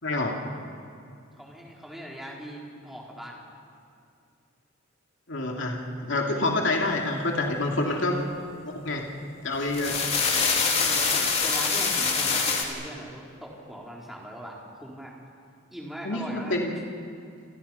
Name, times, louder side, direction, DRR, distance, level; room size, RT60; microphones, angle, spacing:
voice 1, 0.0-0.4 5.3-8.2 8.6-9.1 9.4-10.0 16.0-16.7, left 2 dB, 65° left, 0 dB, 2.9 m, -27 dB
voice 2, 1.4-3.4 7.8-8.2 9.8-10.3 10.7-15.1 15.7-16.6, equal, ahead, -3 dB, 3.9 m, -40 dB
sound 1, 9.5-12.6, left 5 dB, 30° left, 3.0 m, -24 dB
29.0 x 25.5 x 5.8 m, 2.5 s
head